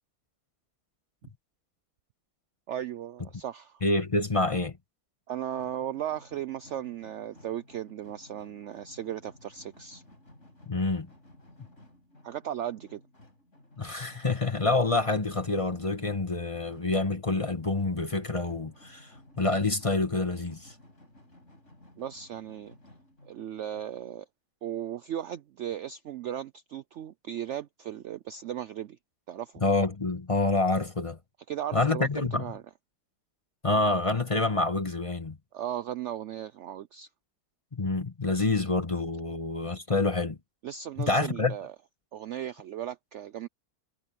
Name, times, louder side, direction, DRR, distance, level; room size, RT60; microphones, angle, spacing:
voice 1, 2.7-3.8 5.3-10.0 12.2-13.0 22.0-22.7 23.2-24.3 24.6-29.0 29.3-29.6 31.5-32.6 35.5-37.1 40.6-41.7 42.1-43.5, right 10 dB, 65° right, 0.7 m, -36 dB
voice 2, 3.8-4.8 10.7-11.1 13.8-19.1 19.4-20.7 29.6-31.2 31.7-32.5 33.6-35.4 37.7-40.4 41.0-41.5, left 2 dB, 20° left, 1.2 m, -27 dB
sound 1, 5.5-23.9, left 1 dB, 50° left, 5.9 m, -56 dB
omnidirectional pair, 1.7 m